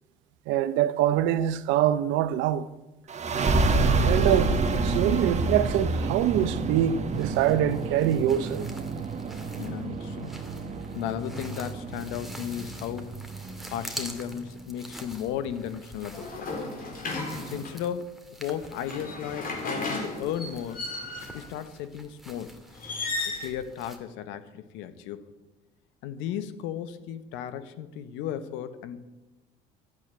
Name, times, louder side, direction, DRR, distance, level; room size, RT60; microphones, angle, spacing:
voice 1, 0.5-2.7 4.0-8.7, right 11 dB, 70° right, 0.8 m, -24 dB
sound 1, 3.1-14.4, right 3 dB, 35° right, 1.6 m, -28 dB
sound 2, 7.1-24.0, equal, ahead, 2.2 m, -47 dB
voice 2, 9.6-10.4 10.9-13.2 13.7-16.5 17.5-20.8 21.3-22.6 23.3-25.2 26.0-29.1, left 9 dB, 70° left, 1.2 m, -35 dB
sound 3, 16.1-17.8 18.7-21.5 22.8-23.4, left 2 dB, 45° left, 4.2 m, -34 dB
12.0 x 8.7 x 9.2 m
hypercardioid pair, 75°, 20 cm